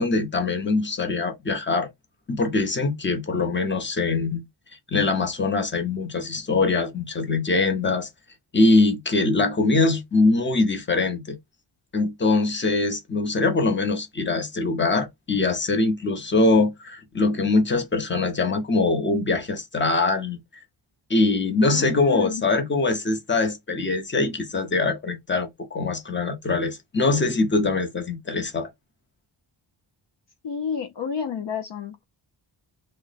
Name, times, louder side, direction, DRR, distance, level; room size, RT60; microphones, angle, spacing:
voice 1, 0.0-1.9 2.3-4.4 4.9-8.1 8.5-11.4 11.9-20.4 21.1-28.7, left 3 dB, 25° left, 0.9 m, -23 dB
voice 2, 21.7-22.4 30.4-32.0, left 7 dB, 65° left, 0.7 m, -30 dB
3.2 x 2.2 x 3.9 m
wide cardioid pair, 105°, 47 cm